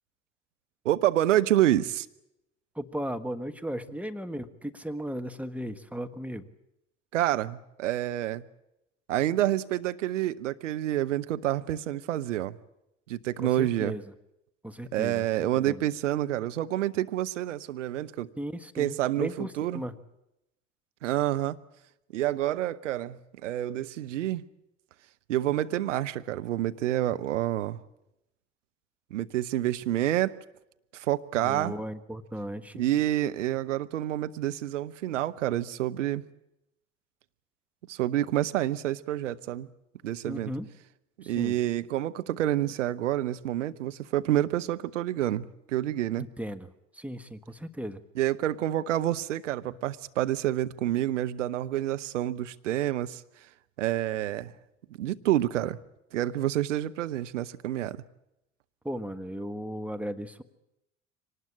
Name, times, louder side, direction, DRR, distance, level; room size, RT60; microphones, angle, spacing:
voice 1, 0.8-2.1 7.1-8.4 9.1-12.6 13.1-13.9 14.9-18.3 18.8-19.8 21.0-21.6 22.1-24.4 25.3-27.8 29.1-30.4 30.9-31.7 32.8-36.2 37.9-39.7 40.0-40.5 41.2-46.3 48.2-53.2 53.8-54.5 55.0-55.8 56.1-58.0, right 13 dB, 75° right, 0.9 m, -28 dB
voice 2, 2.7-6.5 13.4-14.1 14.6-15.8 18.4-19.9 31.3-32.8 40.2-40.7 41.2-41.6 46.2-48.0 58.8-60.4, equal, 5° right, 1.4 m, -36 dB
24.5 x 19.0 x 8.7 m
figure-of-eight pair, 65°, 37 cm